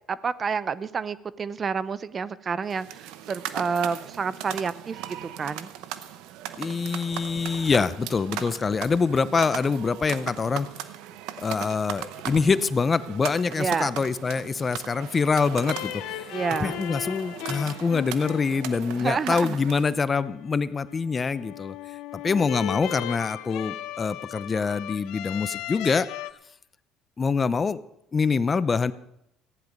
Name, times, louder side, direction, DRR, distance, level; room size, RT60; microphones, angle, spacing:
voice 1, 0.1-5.7 13.6-13.9 16.3-16.8 19.0-19.6, right 5 dB, 35° right, 17 dB, 0.6 m, -29 dB
sound 1, 2.6-20.0, right 12 dB, 75° right, 0.8 m, -38 dB
voice 2, 6.6-10.7 11.4-16.2 16.6-21.8 22.2-26.1 27.2-27.8 28.1-28.9, left 5 dB, 30° left, 16 dB, 0.6 m, -25 dB
sound 2, 15.5-26.3, left 14 dB, 75° left, 0.6 m, -37 dB
15.0 x 10.5 x 5.3 m, 0.79 s
supercardioid pair, 75°, 0 cm